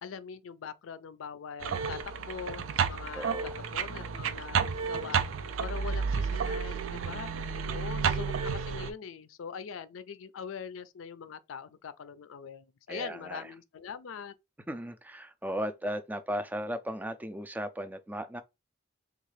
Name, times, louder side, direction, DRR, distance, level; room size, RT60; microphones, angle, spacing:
voice 1, 0.0-5.2 5.6-7.3 7.7-14.3, left 6 dB, 90° left, 0.4 m, -42 dB
sound 1, 1.6-8.9, right 6 dB, 90° right, 0.4 m, -31 dB
voice 2, 3.1-3.5 7.7-8.0 12.9-13.4 14.7-18.4, equal, 10° right, 0.3 m, -36 dB
3.6 x 2.4 x 3.2 m
head